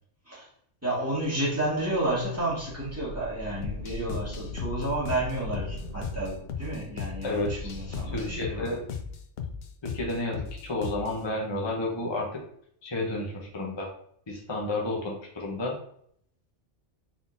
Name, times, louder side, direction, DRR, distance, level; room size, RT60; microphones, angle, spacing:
voice 1, 0.8-8.8, right 1 dB, 10° right, -8 dB, 1.8 m, -31 dB
sound 1, 1.9-8.4, equal, 40° left, 1.8 m, -41 dB
sound 2, 3.6-11.2, left 6 dB, 65° left, 0.7 m, -37 dB
voice 2, 7.2-7.7 8.1-8.8 9.8-12.2 12.8-13.9 14.3-15.7, left 2 dB, 25° left, -2 dB, 0.8 m, -31 dB
4.1 x 3.8 x 2.6 m, 0.67 s
omnidirectional pair, 1.3 m